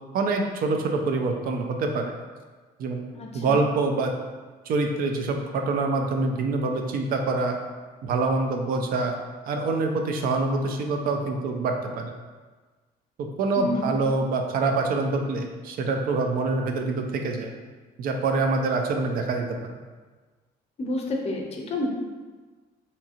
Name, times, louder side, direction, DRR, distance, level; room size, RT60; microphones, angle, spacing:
voice 1, 0.1-2.1 2.8-3.0 3.3-4.1 4.7-7.6 8.0-9.1 9.5-12.1 13.2-17.5 18.0-19.6, right 3 dB, 60° right, 3 dB, 0.4 m, -25 dB
voice 2, 3.1-3.6 13.6-14.0 20.8-21.9, left 1 dB, 40° left, 0 dB, 0.5 m, -29 dB
2.7 x 2.7 x 2.4 m, 1.4 s
cardioid pair, 110°, 17 cm